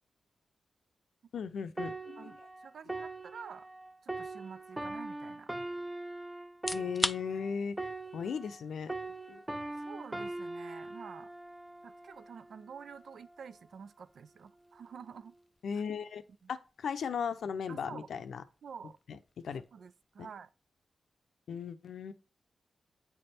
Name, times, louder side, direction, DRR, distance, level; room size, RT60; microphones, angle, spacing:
voice 1, 1.3-2.3 6.7-8.9 9.3-9.4 15.6-16.2 16.5-18.4 19.1-19.6 20.2-20.3 21.5-22.1, left 6 dB, 80° left, 0.5 m, -37 dB
sound 1, 1.8-8.6 8.9-12.5 13.1-13.3, right 2 dB, 15° right, 0.6 m, -41 dB
voice 2, 2.2-3.7 4.0-5.5 9.8-11.3 11.8-15.3 16.4-16.5 17.7-18.1 18.6-19.0 19.7-20.5, right 6 dB, 75° right, 0.4 m, -49 dB
sound 2, 6.5-21.3, left 2 dB, 25° left, 0.3 m, -46 dB
8.5 x 3.4 x 4.2 m
cardioid pair, 60°, 0 cm